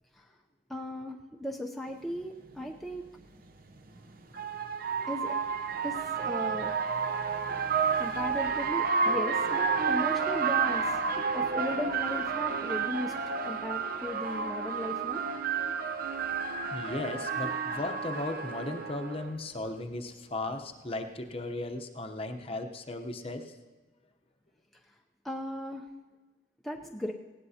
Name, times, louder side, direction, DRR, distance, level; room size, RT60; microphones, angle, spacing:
voice 1, 0.7-3.0 5.1-5.4 5.8-6.7 8.0-11.0 11.3-13.1 13.4-15.2 25.2-25.9 26.6-27.1, left 1 dB, ahead, 0 dB, 0.6 m, -37 dB
sound 1, 2.2-2.3 3.7-19.3, right 5 dB, 50° right, 0.8 m, -30 dB
voice 2, 16.7-23.5, left 2 dB, 30° left, 5 dB, 0.8 m, -36 dB
19.0 x 17.0 x 2.8 m, 1.2 s
head